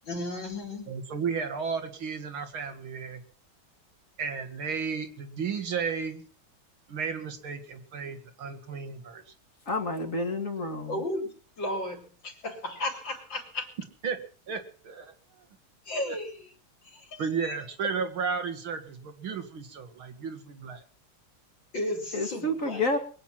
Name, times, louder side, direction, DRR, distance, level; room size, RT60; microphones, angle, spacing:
voice 1, 0.0-1.0 10.9-11.3 11.6-13.7 15.9-16.5 16.8-17.6 21.7-23.0, left 1 dB, 60° left, 3 dB, 4.1 m, -34 dB
voice 2, 0.9-3.2 4.2-6.2 6.9-9.3 14.0-14.2 14.5-15.1 16.0-16.2 17.2-20.8, right 5 dB, 80° right, 6 dB, 2.8 m, -33 dB
voice 3, 9.7-11.0 22.1-23.0, left 1 dB, 40° left, 5 dB, 2.5 m, -29 dB
22.5 x 9.6 x 5.9 m, 0.40 s
omnidirectional pair, 2.3 m